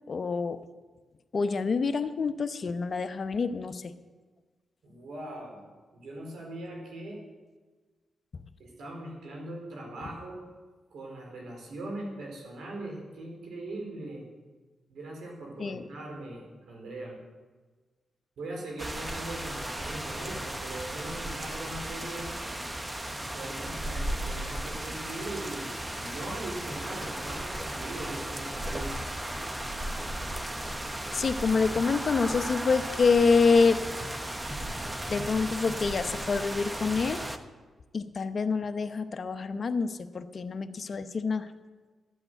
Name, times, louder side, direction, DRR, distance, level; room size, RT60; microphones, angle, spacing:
voice 1, 0.1-0.6 1.3-3.9 15.6-15.8 31.1-33.8 35.1-37.2 37.9-41.5, left 4 dB, 50° left, 10 dB, 0.9 m, -26 dB
voice 2, 4.8-5.6 5.9-7.2 8.6-10.4 10.9-14.3 14.9-17.2 18.4-22.4 23.3-29.1, right 2 dB, 80° right, 0 dB, 4.1 m, -40 dB
sound 1, 18.8-37.4, right 1 dB, 15° right, 1.1 m, -35 dB
13.0 x 8.8 x 7.9 m, 1.4 s
cardioid pair, 70°, 0 cm